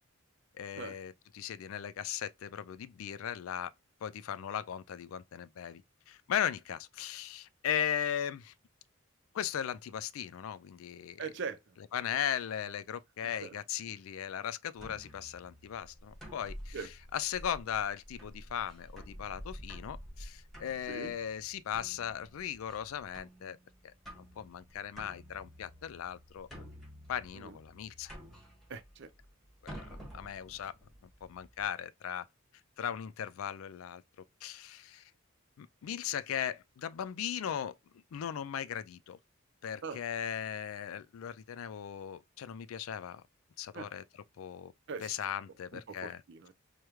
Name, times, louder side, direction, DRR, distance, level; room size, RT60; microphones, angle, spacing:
voice 1, 0.6-3.7 4.0-5.8 6.1-8.5 9.3-11.3 11.9-23.6 23.8-26.7 27.1-28.2 29.6-30.7 31.2-32.3 32.8-34.0 34.4-35.1 35.6-37.7 38.1-39.2 39.6-43.2 43.6-44.0 44.4-44.7 45.0-46.2, left 9 dB, 85° left, 0.4 m, -38 dB
voice 2, 11.2-11.6 13.4-13.5 16.7-16.9 20.9-21.1 27.3-27.6 28.7-29.1 39.8-40.0 43.7-43.9 44.9-45.1 45.9-46.5, right 5 dB, 60° right, 0.5 m, -41 dB
sound 1, 14.8-31.6, equal, ahead, 1.6 m, -50 dB
4.9 x 2.1 x 3.0 m
head